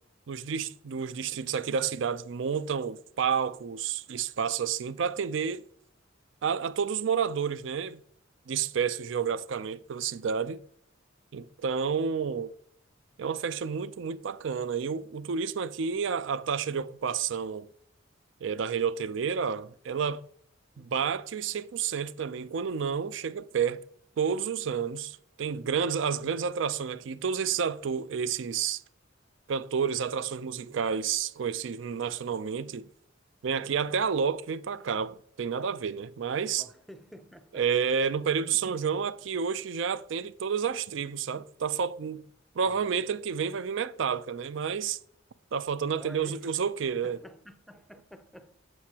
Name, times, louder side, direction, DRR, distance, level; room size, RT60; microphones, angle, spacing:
voice 1, 0.3-5.6 6.4-8.0 8.5-10.6 11.3-12.5 13.2-17.7 18.4-20.2 20.8-23.8 24.2-28.8 29.5-32.9 33.4-36.6 37.5-42.2 42.6-45.0 45.5-47.2, right 6 dB, 65° right, 0.4 m, -30 dB
voice 2, 36.6-37.7 42.7-43.1 46.0-48.6, equal, ahead, 0.5 m, -50 dB
7.8 x 7.4 x 2.8 m
head